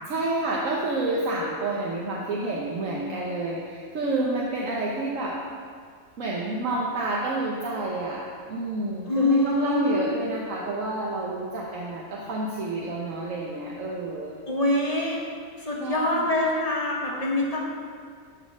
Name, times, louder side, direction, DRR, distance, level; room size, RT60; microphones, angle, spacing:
voice 1, 0.1-5.4 6.2-14.3 15.8-16.3, right 2 dB, 75° right, -3 dB, 1.4 m, -29 dB
voice 2, 9.1-10.1 14.5-15.2 15.6-17.7, left 2 dB, 30° left, -4 dB, 1.6 m, -25 dB
12.5 x 4.3 x 6.1 m, 2.1 s
omnidirectional pair, 1.4 m